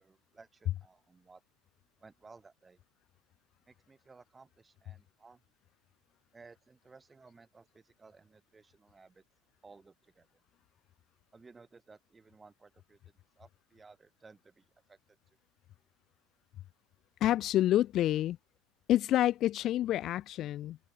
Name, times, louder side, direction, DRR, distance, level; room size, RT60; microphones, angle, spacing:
voice 1, 0.0-1.4 2.0-2.8 3.6-5.4 6.3-9.2 9.6-10.4 11.3-15.2, right 4 dB, 20° right, 3.1 m, -58 dB
voice 2, 17.2-18.4 18.9-20.8, left 13 dB, 50° left, 0.3 m, -28 dB
figure-of-eight pair, 70°, 0 cm